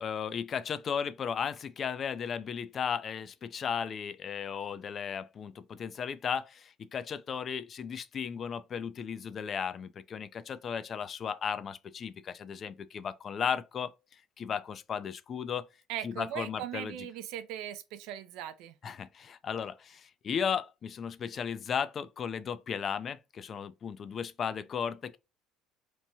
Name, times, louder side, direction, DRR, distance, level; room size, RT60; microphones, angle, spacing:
voice 1, 0.0-15.7 16.0-17.0 18.8-25.2, left 7 dB, 45° left, 0.3 m, -35 dB
voice 2, 15.9-18.8, right 11 dB, 75° right, 0.4 m, -39 dB
3.0 x 2.2 x 2.6 m
supercardioid pair, 75°, 0 cm